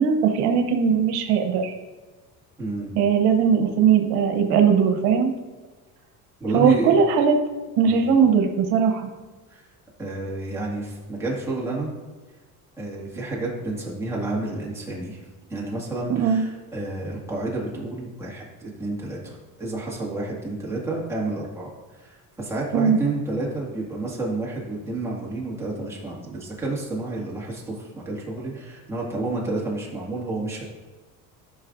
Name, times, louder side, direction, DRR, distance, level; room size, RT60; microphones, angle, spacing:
voice 1, 0.0-1.7 2.9-5.3 6.5-7.4 7.8-9.0 16.1-16.4 22.7-23.0, right 6 dB, 90° right, 5 dB, 1.0 m, -19 dB
voice 2, 2.6-2.9 6.4-7.0 7.9-8.1 9.5-9.7 10.0-11.9 12.8-15.2 15.5-30.6, right 2 dB, 5° right, -5 dB, 2.0 m, -30 dB
13.5 x 5.6 x 2.6 m, 1.3 s
cardioid pair, 135°, 38 cm